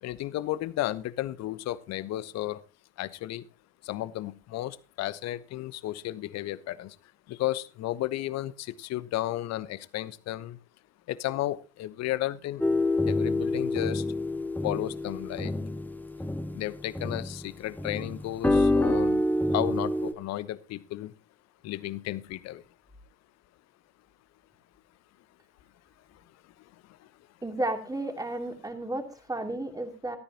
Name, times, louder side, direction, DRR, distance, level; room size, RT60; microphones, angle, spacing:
voice 1, 0.0-2.6 3.0-3.4 3.8-6.9 7.3-10.6 11.1-12.6 13.1-14.0 14.6-15.5 16.5-19.2 19.5-21.1 21.6-22.6, left 15 dB, 50° left, 17 dB, 1.0 m, -33 dB
sound 1, 12.6-17.4 17.8-20.1, left 1 dB, 5° left, 2.0 m, -27 dB
voice 2, 27.4-30.2, right 1 dB, 10° right, 5 dB, 2.8 m, -33 dB
17.0 x 13.5 x 2.9 m, 0.31 s
hypercardioid pair, 65°, 34 cm